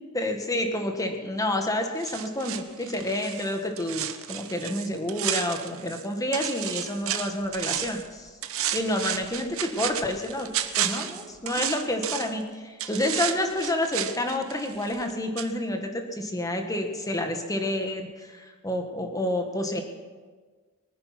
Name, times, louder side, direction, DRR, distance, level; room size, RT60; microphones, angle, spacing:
voice 1, 0.0-8.3 8.7-10.5 10.8-19.8, left 1 dB, 15° left, 4 dB, 1.8 m, -29 dB
sound 1, 2.0-6.1 6.3-8.1 8.4-12.4 12.8-15.1 15.4-15.5, right 11 dB, 65° right, 1.0 m, -32 dB
23.0 x 9.6 x 6.0 m, 1.4 s
head